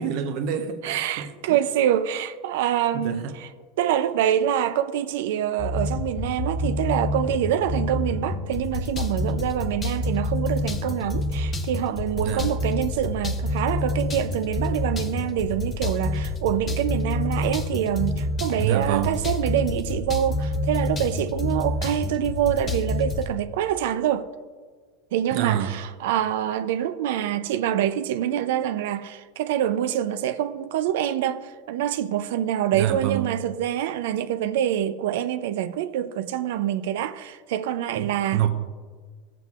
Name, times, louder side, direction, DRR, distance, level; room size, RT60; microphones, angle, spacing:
voice 1, 0.0-1.6 2.9-3.3 12.2-12.5 18.6-19.1 25.3-25.8 32.7-33.2 37.9-38.5, right 10 dB, 60° right, 0.8 m, -27 dB
voice 2, 0.8-3.5 3.8-24.3 25.1-38.4, right 10 dB, 80° right, 0.4 m, -26 dB
sound 1, 5.6-23.3, left 2 dB, 25° left, 0.8 m, -28 dB
14.0 x 7.6 x 2.4 m
supercardioid pair, 125°, 0 cm